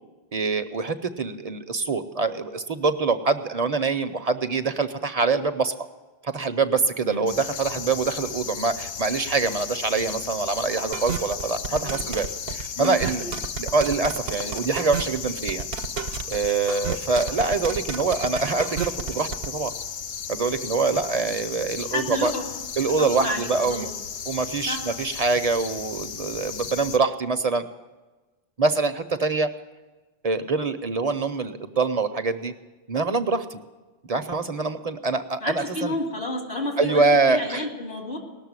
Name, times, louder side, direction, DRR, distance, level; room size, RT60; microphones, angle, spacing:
voice 1, 0.3-5.7 6.2-13.2 13.6-15.7 16.3-19.7 20.3-22.3 22.8-23.9 24.3-27.7 28.6-29.5 30.2-32.5 32.9-33.6 34.1-35.9 36.8-37.7, right 4 dB, 40° right, 9 dB, 0.7 m, -25 dB
sound 1, 7.3-27.0, left 6 dB, 55° left, 0.7 m, -35 dB
sound 2, 10.9-19.5, right 6 dB, 65° right, 1.0 m, -31 dB
voice 2, 11.7-12.0 12.7-13.3 21.8-22.5 22.9-23.9 24.7-24.8 35.4-38.2, left 1 dB, 70° left, 0 dB, 3.1 m, -31 dB
19.0 x 6.7 x 9.5 m, 1.2 s
omnidirectional pair, 1.1 m